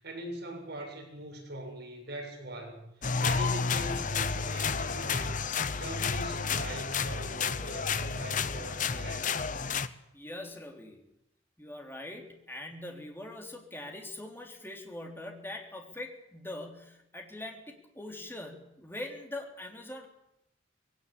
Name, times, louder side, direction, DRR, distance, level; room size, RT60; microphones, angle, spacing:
voice 1, 0.0-2.9 3.2-5.5 5.7-9.5, right 1 dB, 55° right, 1 dB, 7.8 m, -42 dB
sound 1, 3.0-9.9, left 5 dB, 40° left, 1.0 m, -31 dB
voice 2, 10.1-11.0 11.6-20.1, left 1 dB, 10° left, 2 dB, 3.7 m, -42 dB
21.0 x 18.0 x 8.7 m, 0.84 s
head